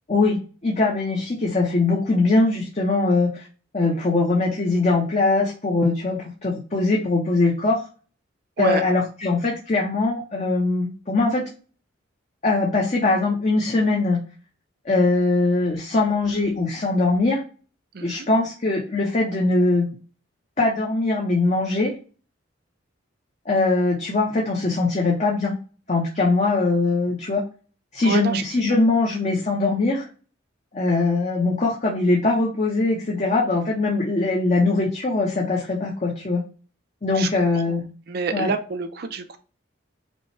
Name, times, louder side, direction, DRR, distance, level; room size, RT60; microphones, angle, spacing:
voice 1, 0.1-3.5 3.7-7.8 8.6-11.5 12.4-14.2 14.8-17.4 18.0-19.9 20.6-21.9 23.5-25.6 25.9-27.5 27.9-30.1 30.7-36.4 37.0-37.9 38.3-38.5, left 3 dB, 35° left, -2 dB, 0.7 m, -21 dB
voice 2, 17.9-18.3 28.0-28.4 37.2-37.3 37.7-37.8 38.1-39.4, right 4 dB, 50° right, 7 dB, 0.4 m, -27 dB
5.1 x 2.1 x 3.2 m, 0.37 s
head